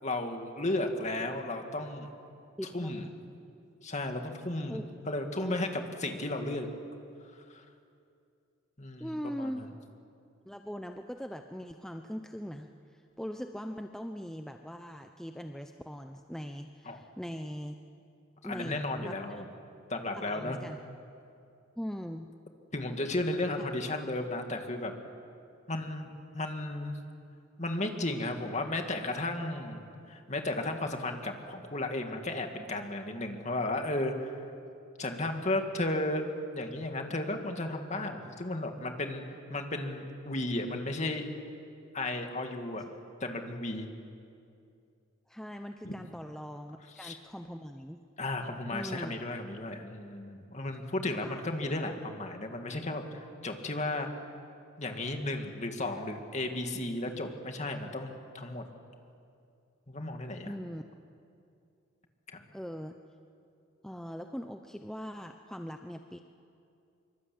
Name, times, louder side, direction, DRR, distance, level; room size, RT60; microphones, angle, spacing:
voice 1, 0.0-2.1 2.7-3.0 3.8-4.8 5.1-6.7 7.5-7.6 8.8-9.7 16.9-17.0 18.4-19.5 19.9-20.6 22.7-24.9 25.7-27.0 27.6-34.4 35.0-36.2 36.5-39.2 39.5-41.2 41.9-42.9 43.2-43.9 45.8-45.9 47.0-47.2 48.2-54.1 54.8-58.6 59.9-60.5 62.3-62.4, left 2 dB, 35° left, 4 dB, 2.3 m, -34 dB
voice 2, 2.6-3.0 4.7-4.8 5.4-5.6 9.0-9.7 10.5-17.8 18.4-19.4 20.2-20.8 21.8-22.3 45.3-48.0 48.7-49.1 51.2-51.4 60.5-60.8 62.5-62.9 63.8-66.2, equal, 5° left, 5 dB, 0.7 m, -41 dB
25.5 x 24.0 x 8.7 m, 2.5 s
head